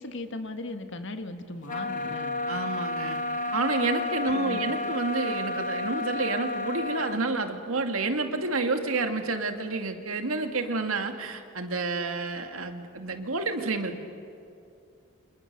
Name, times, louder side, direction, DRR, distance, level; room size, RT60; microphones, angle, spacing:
voice 1, 0.0-2.3 4.3-4.7, left 2 dB, 60° left, 7 dB, 1.9 m, -38 dB
sound 1, 1.7-7.2, left 2 dB, 40° left, 1.7 m, -31 dB
voice 2, 2.5-3.2 3.5-14.0, right 3 dB, 75° right, 6 dB, 2.2 m, -29 dB
29.5 x 27.5 x 6.8 m, 2.5 s
head